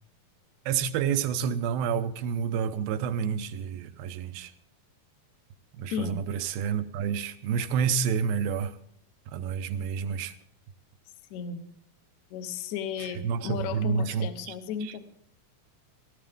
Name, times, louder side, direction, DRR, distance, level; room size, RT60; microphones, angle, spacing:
voice 1, 0.7-4.5 5.7-8.7 9.3-10.3 13.0-14.5 14.8-14.9, right 7 dB, 80° right, 2.6 m, -29 dB
voice 2, 5.9-6.2 11.3-11.6 12.3-15.0, left 7 dB, 65° left, 2.1 m, -34 dB
18.5 x 14.0 x 3.5 m
omnidirectional pair, 4.2 m